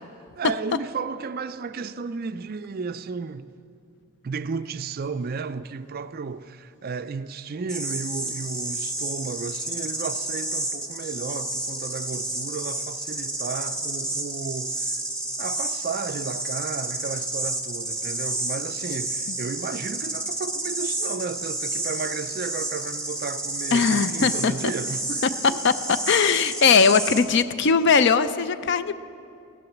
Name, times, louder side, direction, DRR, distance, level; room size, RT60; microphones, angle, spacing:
voice 1, 0.4-3.5 4.2-14.8 15.4-25.6, right 5 dB, 40° right, 0.4 m, -33 dB
sound 1, 7.7-27.2, right 2 dB, 5° left, 1.1 m, -30 dB
voice 2, 23.7-24.7 25.6-25.7 26.1-29.0, left 5 dB, 50° left, 0.5 m, -20 dB
15.5 x 11.0 x 7.1 m
head